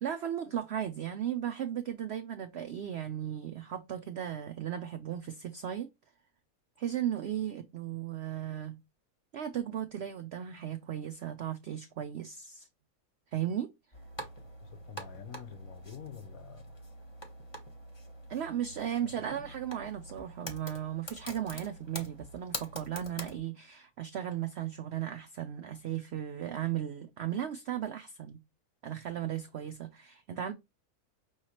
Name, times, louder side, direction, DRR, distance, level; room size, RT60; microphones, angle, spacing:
voice 1, 0.0-5.9 6.8-8.8 9.3-12.7 13.3-13.7 18.3-28.4 28.8-30.5, right 10 dB, 80° right, 0.5 m, -36 dB
sound 1, 13.9-23.4, equal, 20° left, 0.9 m, -45 dB
voice 2, 14.6-16.7 18.7-19.2, left 9 dB, 70° left, 1.1 m, -48 dB
5.5 x 2.9 x 2.9 m
omnidirectional pair, 1.6 m